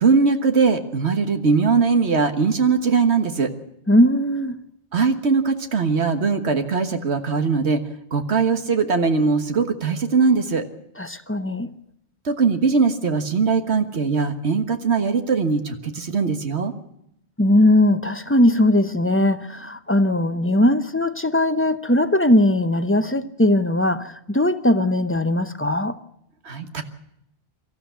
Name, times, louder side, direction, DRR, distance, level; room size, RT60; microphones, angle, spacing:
voice 1, 0.0-3.5 4.9-7.8 8.1-10.6 12.3-16.7 26.5-26.8, right 5 dB, 80° right, 1.7 m, -20 dB
voice 2, 3.9-4.5 11.0-11.7 17.4-25.9, left 1 dB, 15° left, 0.8 m, -19 dB
24.5 x 14.0 x 8.1 m
omnidirectional pair, 1.1 m